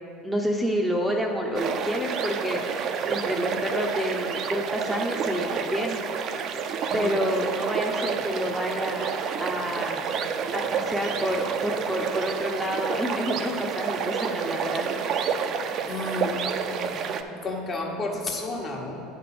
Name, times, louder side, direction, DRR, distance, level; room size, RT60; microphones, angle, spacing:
voice 1, 0.2-6.0 6.3-6.6 6.9-9.1 9.4-10.1 10.5-15.3, equal, 5° right, 0 dB, 0.7 m, -29 dB
sound 1, 1.5-17.2, right 6 dB, 50° right, 0.5 m, -29 dB
voice 2, 6.9-7.2 15.9-16.5 16.8-17.0 17.4-19.0, left 3 dB, 35° left, 0 dB, 1.2 m, -32 dB
9.7 x 3.4 x 6.0 m, 2.7 s
hypercardioid pair, 85°, 0 cm